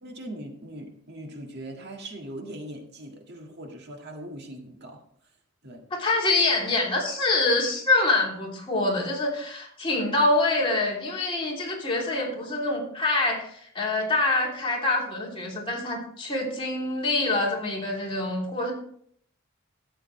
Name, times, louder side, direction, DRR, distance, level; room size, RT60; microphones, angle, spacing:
voice 1, 0.0-5.0 5.6-5.9, right 1 dB, 55° right, 2 dB, 1.8 m, -40 dB
voice 2, 5.9-18.7, left 2 dB, 25° left, -3 dB, 2.9 m, -25 dB
13.0 x 8.0 x 3.2 m, 0.63 s
head